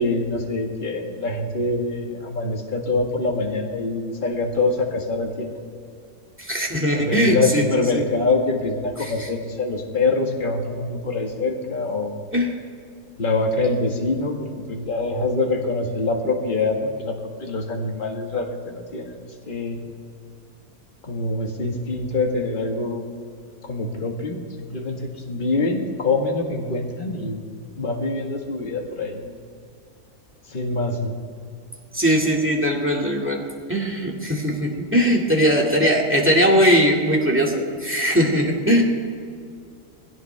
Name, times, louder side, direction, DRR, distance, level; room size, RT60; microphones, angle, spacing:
voice 1, 0.0-5.5 6.9-12.2 13.2-17.2 17.4-19.8 21.0-23.0 23.6-27.4 27.8-29.4 30.5-31.2, left 3 dB, 30° left, 1 dB, 1.7 m, -25 dB
voice 2, 6.4-7.6 7.9-8.0 9.0-9.1 12.3-12.5 31.9-33.4 33.7-38.8, equal, 5° right, -1 dB, 2.1 m, -20 dB
19.5 x 17.0 x 3.4 m, 2.2 s
omnidirectional pair, 1.8 m